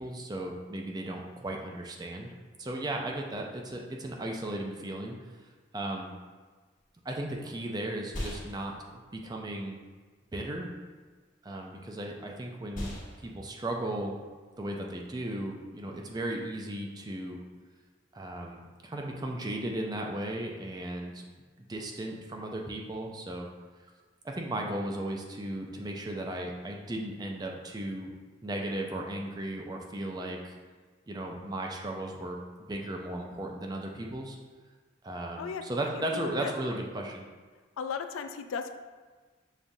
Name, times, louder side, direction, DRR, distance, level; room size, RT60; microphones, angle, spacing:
voice 1, 0.0-2.3 2.6-5.1 5.7-6.1 7.0-8.8 9.1-9.8 10.3-10.7 11.4-12.9 13.2-14.2 14.6-17.4 18.1-21.2 21.6-23.5 24.2-28.1 28.4-30.6 31.1-32.4 32.7-34.4 35.0-37.3, right 1 dB, 20° right, 1 dB, 0.4 m, -36 dB
sound 1, 6.8-16.4, left 1 dB, 40° left, 1.3 m, -45 dB
voice 2, 35.9-36.5 37.8-38.7, left 6 dB, 85° left, 7 dB, 0.3 m, -36 dB
6.9 x 2.4 x 2.6 m, 1.4 s
head